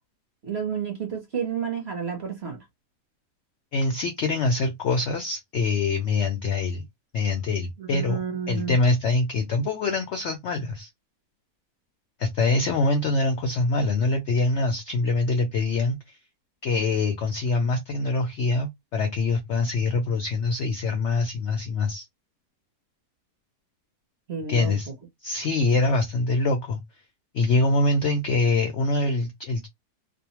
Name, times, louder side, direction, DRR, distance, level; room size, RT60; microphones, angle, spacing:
voice 1, 0.4-2.6 7.8-8.8 24.3-24.8, right 7 dB, 50° right, 0.8 m, -31 dB
voice 2, 3.7-6.8 7.1-8.2 8.5-10.9 12.2-16.2 16.6-22.1 24.5-24.9 25.2-26.8 27.3-29.7, left 3 dB, 75° left, 0.6 m, -24 dB
2.7 x 2.0 x 2.8 m
omnidirectional pair, 1.8 m